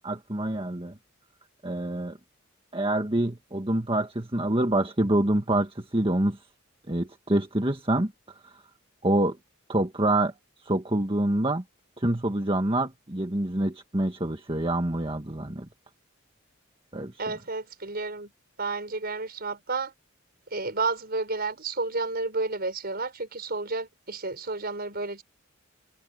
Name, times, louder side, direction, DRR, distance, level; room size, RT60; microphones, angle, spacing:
voice 1, 0.0-0.9 1.6-2.2 2.7-6.4 6.9-8.1 8.4-8.5 9.0-9.4 9.7-10.3 10.6-11.6 12.0-15.7 16.9-17.1, right 1 dB, 25° right, 1.7 m, -26 dB
voice 2, 17.2-18.3 18.6-19.9 20.5-25.2, right 3 dB, 50° right, 5.7 m, -31 dB
head